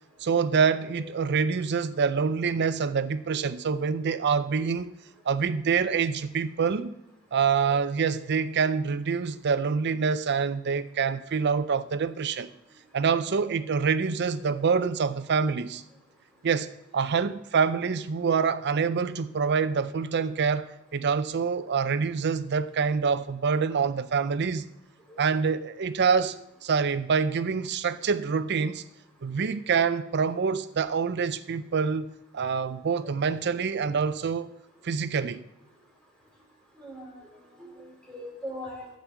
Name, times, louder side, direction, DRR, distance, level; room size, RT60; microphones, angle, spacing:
voice 1, 0.2-4.9 5.3-7.0 7.3-12.5 12.9-15.8 16.4-24.7 25.2-26.4 26.6-28.8 29.2-32.1 32.3-34.5 34.8-35.4, right 5 dB, 55° right, 0.5 m, -26 dB
voice 2, 36.8-37.2 37.6-38.9, equal, 5° left, 3.6 m, -41 dB
13.5 x 5.2 x 7.3 m
head